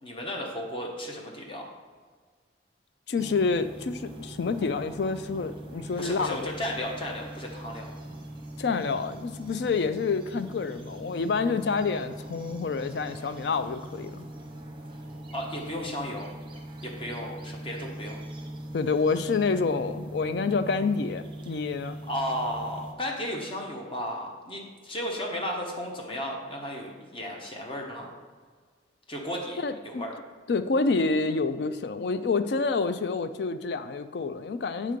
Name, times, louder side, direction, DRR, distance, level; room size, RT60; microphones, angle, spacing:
voice 1, 0.0-1.7 6.0-7.9 15.3-16.3 16.8-18.2 22.1-28.1 29.1-30.1, equal, 30° left, 0 dB, 1.1 m, -34 dB
voice 2, 3.1-6.5 8.6-14.2 18.7-22.0 29.6-30.0 30.5-35.0, left 4 dB, 60° left, 11 dB, 0.4 m, -28 dB
sound 1, 3.2-22.9, right 1 dB, 25° right, 0.8 m, -41 dB
7.9 x 3.7 x 5.1 m, 1.5 s
head